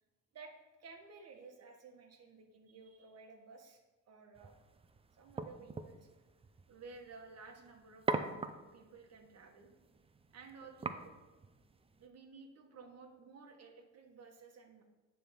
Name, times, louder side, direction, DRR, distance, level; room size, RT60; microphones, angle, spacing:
voice 1, 0.8-4.5 5.1-6.1 6.7-8.4 8.7-9.7 10.3-11.1 12.0-14.8, right 4 dB, 55° right, 3 dB, 1.4 m, -55 dB
sound 1, 4.4-12.1, right 3 dB, 20° right, 0.4 m, -44 dB
9.2 x 3.4 x 5.8 m, 1.2 s
cardioid pair, 90°, 30 cm